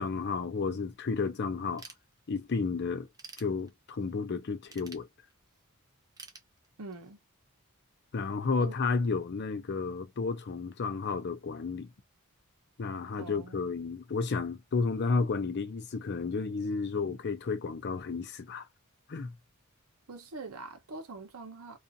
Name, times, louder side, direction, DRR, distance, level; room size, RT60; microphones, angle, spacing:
voice 1, 0.0-1.8 2.3-3.1 3.4-5.1 8.1-11.9 12.8-18.7 19.1-19.3, left 4 dB, 50° left, 0.5 m, -32 dB
Ratchet pawl / Tools, 1.8-2.6 3.0-4.1 4.7-5.6 6.2-7.1, right 4 dB, 15° right, 0.5 m, -50 dB
voice 2, 6.8-7.2 8.6-8.8 13.2-13.6 20.1-21.8, right 3 dB, 70° right, 0.8 m, -44 dB
2.5 x 2.4 x 2.6 m
head